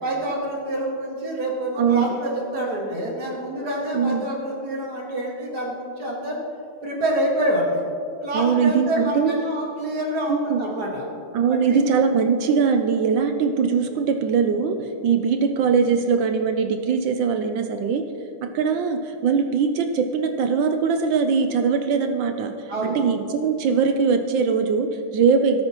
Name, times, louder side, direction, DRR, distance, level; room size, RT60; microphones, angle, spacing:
voice 1, 0.0-6.4 6.8-7.8 8.2-11.1 11.5-11.8 22.7-23.0, right 1 dB, 50° right, -2 dB, 2.2 m, -27 dB
voice 2, 3.9-4.3 8.3-9.3 10.3-10.6 11.3-14.7 15.0-18.0 18.5-25.6, right 6 dB, 70° right, 6 dB, 1.2 m, -21 dB
18.0 x 8.6 x 3.0 m, 2.5 s
omnidirectional pair, 2.4 m